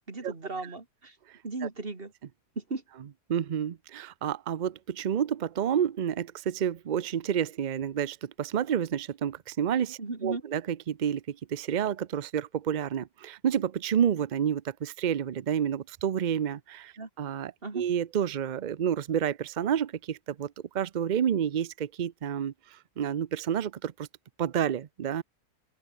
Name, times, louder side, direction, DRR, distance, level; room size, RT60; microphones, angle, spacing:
voice 1, 0.1-1.2 1.4-2.1 2.6-2.8 10.0-10.4 17.0-17.1 17.6-17.8, right 3 dB, 35° right, 2.8 m, -36 dB
voice 2, 3.3-24.1 24.4-25.2, right 9 dB, 85° right, 0.4 m, -29 dB
open air
omnidirectional pair, 1.7 m